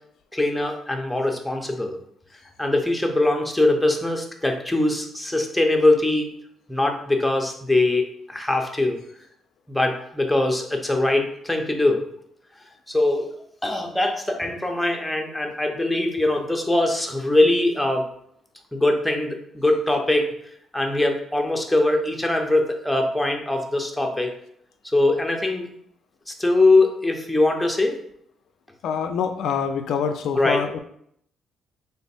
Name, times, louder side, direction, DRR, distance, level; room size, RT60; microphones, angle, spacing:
voice 1, 0.3-2.0 2.6-6.3 6.7-9.0 9.7-12.0 12.9-13.3 13.6-18.1 18.7-20.3 20.7-24.3 24.8-25.7 26.3-28.0 30.3-30.6, left 2 dB, 5° left, 2 dB, 0.6 m, -22 dB
voice 2, 28.8-30.8, left 7 dB, 75° left, 7 dB, 0.3 m, -25 dB
3.3 x 2.1 x 4.2 m, 0.69 s
cardioid pair, 90°, 0 cm